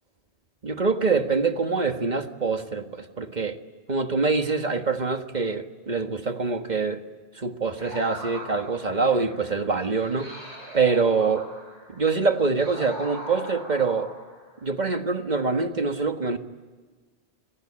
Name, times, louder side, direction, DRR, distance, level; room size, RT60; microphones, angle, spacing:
voice 1, 0.6-3.6 3.9-7.0 7.3-10.3 10.7-11.5 11.9-14.1 14.6-16.4, right 4 dB, 40° right, 7 dB, 1.6 m, -25 dB
sound 1, 7.8-14.6, right 1 dB, 90° right, 8.5 m, -41 dB
28.5 x 21.5 x 8.8 m, 1.4 s
omnidirectional pair, 1.1 m